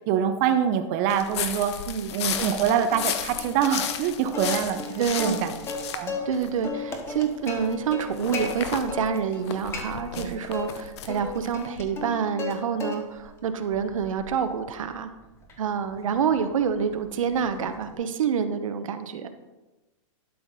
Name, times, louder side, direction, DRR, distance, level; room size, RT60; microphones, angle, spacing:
voice 1, 0.1-1.7 2.1-6.3 10.2-10.4, right 8 dB, 30° right, 7 dB, 0.6 m, -25 dB
sound 1, 1.1-7.2 7.5-11.9, left 9 dB, 55° left, 0.8 m, -34 dB
Plucked string instrument, 2.9-3.5 3.8-3.9 4.3-6.4 6.6-8.5 8.9-9.4 9.7-10.7 11.1-12.5 12.8-13.3 13.7-17.9, left 5 dB, 15° left, 0.9 m, -36 dB
voice 2, 5.0-5.5 6.3-15.1 15.6-19.3, right 7 dB, 85° right, 8 dB, 0.9 m, -27 dB
12.0 x 5.7 x 4.1 m, 1.1 s
hypercardioid pair, 160°, 17 cm